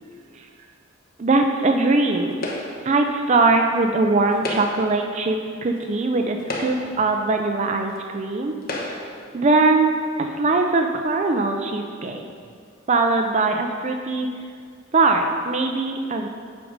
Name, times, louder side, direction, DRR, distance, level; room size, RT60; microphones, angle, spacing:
voice 1, 1.2-2.5 2.8-8.5 9.3-9.9 10.2-12.2 12.9-14.3 14.9-16.3, right 3 dB, 35° right, 4 dB, 0.4 m, -21 dB
sound 1, 2.4-2.9 4.3-5.0 5.8-5.9 6.4-7.1 7.9-8.0 8.6-9.2, left 1 dB, 45° left, 0.9 m, -31 dB
7.8 x 5.2 x 5.1 m, 2.1 s
head